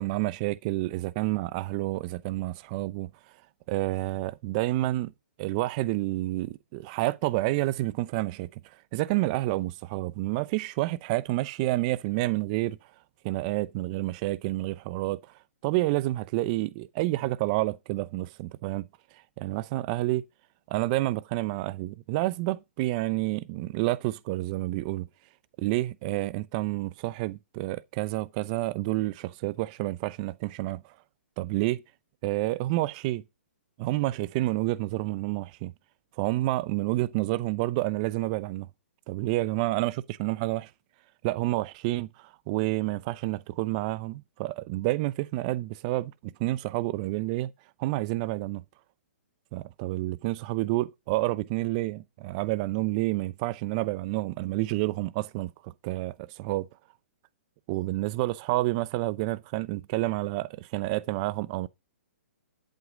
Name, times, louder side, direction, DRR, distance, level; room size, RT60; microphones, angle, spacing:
voice 1, 0.0-3.1 3.7-5.1 5.4-8.6 8.9-12.8 13.2-15.2 15.6-18.9 19.4-20.2 20.7-25.1 25.6-30.9 31.4-31.8 32.2-33.2 33.8-35.7 36.2-38.7 39.1-40.7 41.2-47.5 47.8-48.6 49.5-56.7 57.7-61.7, right 18 dB, 35° right, 0.6 m, -29 dB
11.5 x 7.9 x 5.0 m
hypercardioid pair, 145°, 7 cm